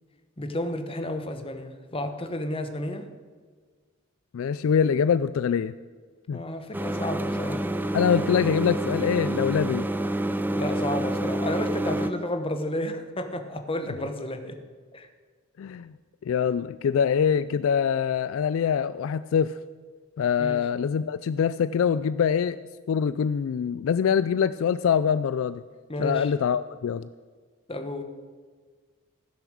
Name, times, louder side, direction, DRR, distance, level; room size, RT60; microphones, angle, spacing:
voice 1, 0.4-3.1 6.3-7.7 10.5-14.6 14.9-15.1 20.4-20.6 25.9-26.3 27.7-28.0, left 1 dB, 25° left, 7 dB, 1.0 m, -31 dB
voice 2, 4.3-5.7 6.3-6.4 7.9-9.9 15.6-15.9 16.2-19.6 20.2-22.6 22.9-25.6 26.0-27.1, left 7 dB, 65° left, 14 dB, 0.3 m, -24 dB
sound 1, 6.7-12.1, right 1 dB, 10° right, 0.4 m, -28 dB
15.5 x 6.8 x 6.3 m, 1.5 s
head